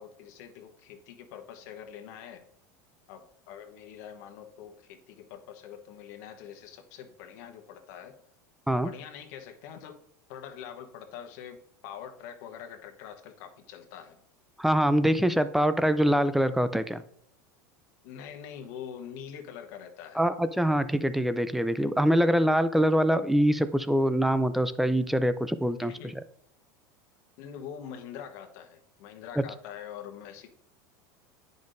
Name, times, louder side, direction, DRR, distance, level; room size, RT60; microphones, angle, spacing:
voice 1, 0.0-2.4 3.1-8.2 8.7-10.0 10.3-14.2 18.0-20.2 25.8-26.2 27.4-30.5, left 8 dB, 65° left, 5 dB, 1.1 m, -44 dB
voice 2, 14.6-17.0 20.2-25.9, equal, ahead, 12 dB, 0.3 m, -24 dB
9.5 x 5.2 x 2.6 m, 0.68 s
supercardioid pair, 130°, 10 cm